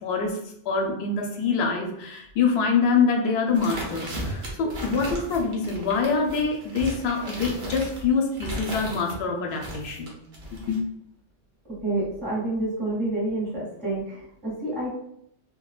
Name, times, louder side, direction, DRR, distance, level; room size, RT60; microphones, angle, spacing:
voice 1, 0.0-0.4 0.7-10.2 10.7-10.9, left 5 dB, 65° left, 1 dB, 0.8 m, -25 dB
sound 1, 3.5-9.2 9.6-10.8, right 1 dB, 60° right, 1.0 m, -35 dB
voice 2, 11.6-15.0, right 2 dB, 25° right, -10 dB, 1.6 m, -28 dB
3.7 x 2.0 x 2.3 m, 0.74 s
omnidirectional pair, 1.3 m